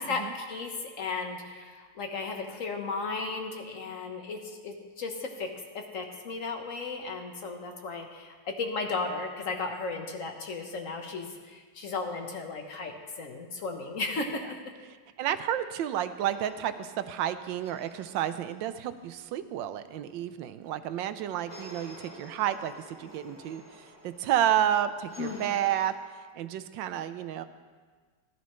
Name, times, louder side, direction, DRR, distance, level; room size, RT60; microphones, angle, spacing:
voice 1, 0.1-5.5 5.7-14.4 25.2-25.4, left 4 dB, 50° left, 3 dB, 1.4 m, -35 dB
voice 2, 15.2-25.9 26.3-27.4, right 11 dB, 85° right, 12 dB, 1.3 m, -30 dB
sound 1, 16.2-19.4 21.5-25.8, equal, 25° left, 4.7 m, -51 dB
14.5 x 12.5 x 3.2 m, 1.5 s
omnidirectional pair, 2.0 m